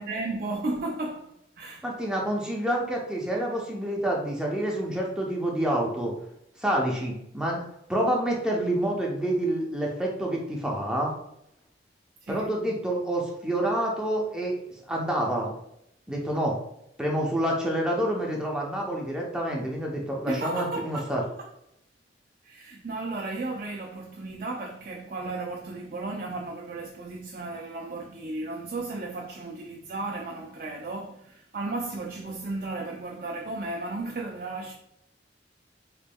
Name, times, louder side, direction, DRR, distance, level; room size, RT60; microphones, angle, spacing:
voice 1, 0.0-1.9 12.2-12.5 20.3-21.5 22.4-34.7, right 2 dB, 50° right, 0.4 m, -34 dB
voice 2, 1.8-6.1 6.6-7.6 7.9-11.1 12.3-14.6 14.9-15.5 16.1-16.5 17.0-21.2, right 1 dB, 5° right, 0.6 m, -28 dB
3.9 x 3.5 x 2.2 m
head